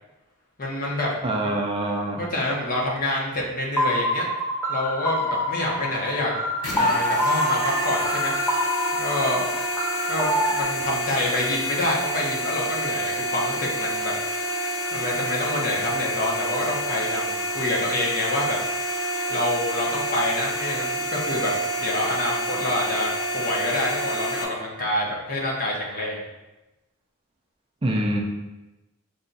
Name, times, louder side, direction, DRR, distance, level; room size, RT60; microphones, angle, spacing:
voice 1, 0.6-1.5 2.2-4.3 4.7-6.4 6.8-8.3 8.9-9.4 10.1-14.1 14.9-18.6 19.3-21.5 21.8-23.1 23.3-26.2, left 1 dB, 45° left, -3 dB, 1.0 m, -27 dB
voice 2, 1.2-2.3 27.8-28.2, right 1 dB, 25° right, 0 dB, 0.5 m, -25 dB
sound 1, 3.8-10.6, equal, 10° left, 0.8 m, -26 dB
sound 2, 6.6-24.4, equal, 90° left, 0.9 m, -28 dB
5.3 x 2.3 x 3.9 m, 1.0 s
head